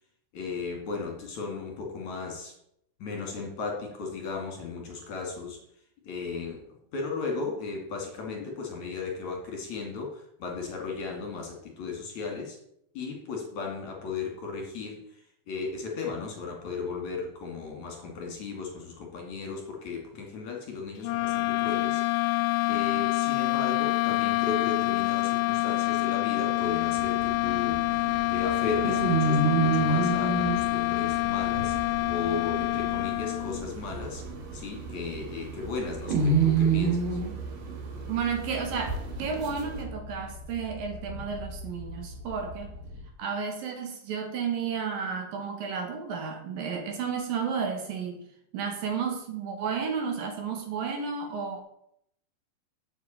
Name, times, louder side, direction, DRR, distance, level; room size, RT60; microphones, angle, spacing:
voice 1, 0.3-2.6 3.0-5.6 6.0-12.6 12.9-22.3 22.7-28.0 28.3-34.2 34.5-37.2, left 4 dB, 50° left, 1 dB, 3.1 m, -36 dB
sound 1, 21.0-33.7, left 22 dB, 85° left, 2.2 m, -27 dB
sound 2, 26.4-39.8, right 4 dB, 85° right, 4.6 m, -30 dB
sound 3, 27.0-43.1, right 2 dB, 40° right, 2.5 m, -42 dB
voice 2, 38.1-42.7 43.2-48.2 48.5-51.6, right 6 dB, 65° right, 4 dB, 3.2 m, -32 dB
8.3 x 7.7 x 8.6 m, 0.73 s
omnidirectional pair, 4.7 m